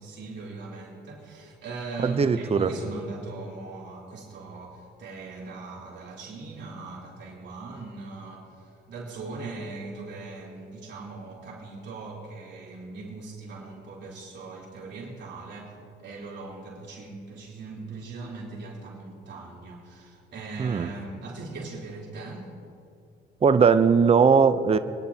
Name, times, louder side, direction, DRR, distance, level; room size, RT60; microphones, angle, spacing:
voice 1, 0.0-22.5, right 3 dB, 65° right, -4 dB, 3.5 m, -39 dB
voice 2, 2.0-2.7 20.6-20.9 23.4-24.8, right 6 dB, 30° right, 11 dB, 0.6 m, -19 dB
24.5 x 10.5 x 2.8 m, 2.6 s
cardioid pair, 90°, 20 cm